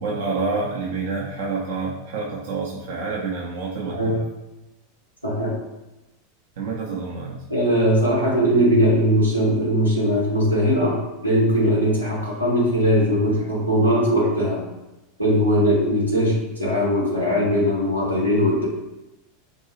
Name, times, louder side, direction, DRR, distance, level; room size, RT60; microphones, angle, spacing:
voice 1, 0.0-4.2 6.6-7.4, right 4 dB, 60° right, -4 dB, 0.6 m, -28 dB
voice 2, 3.8-4.2 5.2-5.5 7.5-11.0 11.2-14.6 15.2-18.7, equal, 90° right, -5 dB, 0.9 m, -20 dB
3.8 x 2.6 x 2.8 m, 0.99 s
figure-of-eight pair, 85°, 0 cm